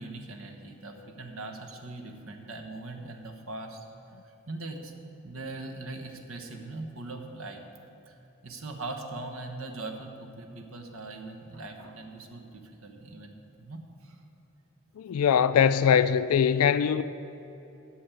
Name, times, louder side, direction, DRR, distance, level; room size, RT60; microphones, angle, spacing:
voice 1, 0.0-4.9 5.2-7.6 8.1-14.2, right 2 dB, 70° right, 1.1 m, -41 dB
voice 2, 15.0-17.0, left 7 dB, 85° left, 0.3 m, -22 dB
9.0 x 6.5 x 8.4 m
head